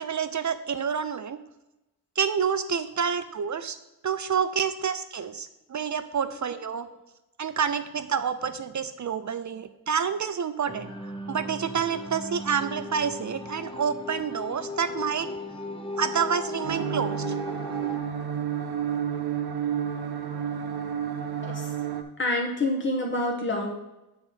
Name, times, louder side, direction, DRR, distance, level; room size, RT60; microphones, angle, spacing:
voice 1, 0.0-1.4 2.2-3.8 4.0-6.9 7.4-10.9 11.3-15.3 16.0-17.4, right 7 dB, 50° right, 11 dB, 0.4 m, -28 dB
sound 1, 10.7-18.0, left 2 dB, 15° left, 0.7 m, -37 dB
sound 2, 16.6-22.0, right 8 dB, 80° right, 0.7 m, -30 dB
voice 2, 22.2-23.7, left 2 dB, 30° left, 1 dB, 1.1 m, -27 dB
7.9 x 4.0 x 5.6 m, 0.97 s
wide cardioid pair, 110°, 37 cm